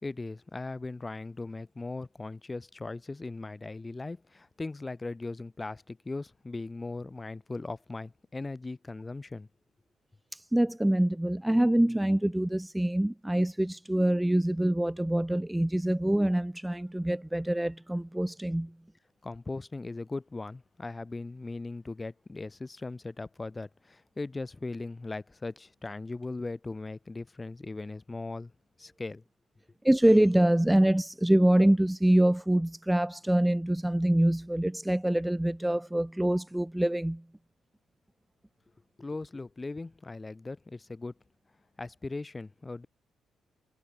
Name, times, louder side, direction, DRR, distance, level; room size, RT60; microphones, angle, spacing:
voice 1, 0.0-9.5 19.2-28.5 28.8-29.2 39.0-41.1 41.8-42.9, left 3 dB, 20° left, 1.3 m, -39 dB
voice 2, 10.3-18.7 29.8-37.2, right 1 dB, 5° right, 0.3 m, -25 dB
cardioid pair, 90°, 0 cm